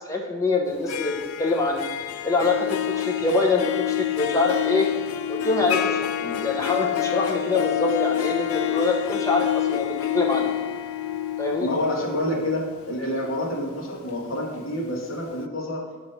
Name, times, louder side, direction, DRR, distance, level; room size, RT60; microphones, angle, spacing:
voice 1, 0.1-1.8 2.2-4.9 5.3-6.0 6.4-10.5 11.4-11.7, left 3 dB, 15° left, 0 dB, 0.6 m, -24 dB
Harp, 0.7-14.6, left 11 dB, 80° left, 0.3 m, -28 dB
voice 2, 11.6-15.9, left 1 dB, 65° left, -2 dB, 1.3 m, -28 dB
6.4 x 3.0 x 5.7 m, 1.2 s
head